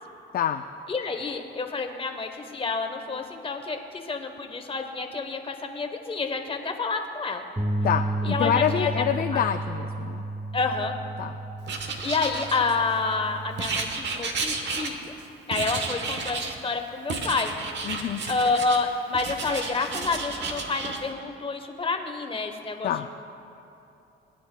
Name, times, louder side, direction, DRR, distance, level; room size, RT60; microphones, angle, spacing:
voice 1, 0.9-7.4 8.2-9.1 9.3-9.4 10.5-10.9 11.7-15.1 15.5-17.5 18.3-23.1, left 4 dB, 25° left, 5 dB, 1.0 m, -29 dB
sound 1, 7.6-13.8, right 2 dB, 15° right, 0.8 m, -32 dB
voice 2, 7.8-10.2 11.2-11.3 17.8-18.2 22.8-23.1, left 9 dB, 50° left, 7 dB, 0.4 m, -26 dB
Writing, 11.7-13.0 13.6-15.2 15.5-16.6 17.1-18.8 19.1-21.0, right 4 dB, 65° right, 1.1 m, -32 dB
20.0 x 9.4 x 2.2 m, 2.9 s
cardioid pair, 90°, 20 cm